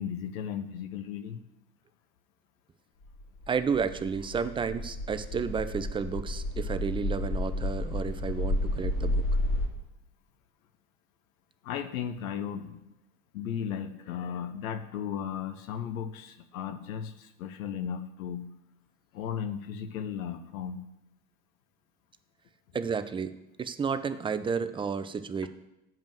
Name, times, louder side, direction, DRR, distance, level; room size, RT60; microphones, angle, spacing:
voice 1, 0.0-1.4 11.6-12.8 13.3-18.5 19.1-20.9 25.4-25.5, left 8 dB, 65° left, 9 dB, 0.8 m, -35 dB
sound 1, 3.1-9.7, left 1 dB, 50° left, 2.6 m, -31 dB
voice 2, 3.5-9.2 22.7-25.5, right 6 dB, 10° right, 11 dB, 0.4 m, -32 dB
7.8 x 5.2 x 7.4 m, 0.94 s
figure-of-eight pair, 70°, 44 cm